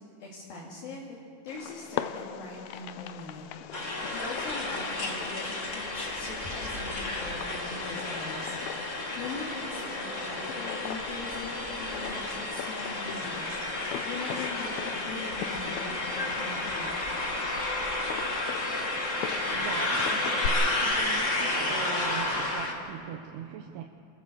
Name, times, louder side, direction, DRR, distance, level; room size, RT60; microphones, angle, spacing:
voice 1, 0.2-1.2 1.4-3.4 3.7-13.5 13.8-16.9, left 3 dB, 60° left, -4 dB, 3.9 m, -42 dB
Fireworks, 1.5-20.5, left 11 dB, 90° left, 2.1 m, -40 dB
sound 1, 3.7-22.7, left 2 dB, 45° left, 1.0 m, -32 dB
voice 2, 18.6-23.8, right 8 dB, 75° right, 3 dB, 2.7 m, -41 dB
28.5 x 15.0 x 6.9 m, 2.4 s
omnidirectional pair, 5.1 m